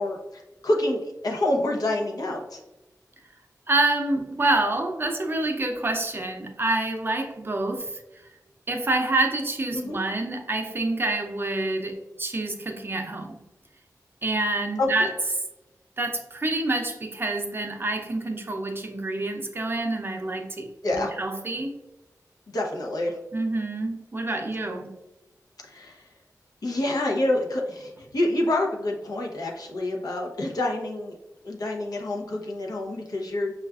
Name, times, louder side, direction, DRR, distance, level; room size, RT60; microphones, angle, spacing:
voice 1, 0.0-2.6 9.7-10.0 14.8-14.9 20.8-21.1 22.5-23.2 25.6-26.0 26.6-31.1 31.4-33.5, left 1 dB, 80° left, -1 dB, 0.7 m, -27 dB
voice 2, 3.7-7.9 8.7-13.3 14.2-15.1 16.0-21.7 23.3-24.9, right 2 dB, 35° right, 3 dB, 0.5 m, -27 dB
5.5 x 2.3 x 2.3 m, 0.98 s
wide cardioid pair, 85°, 6 cm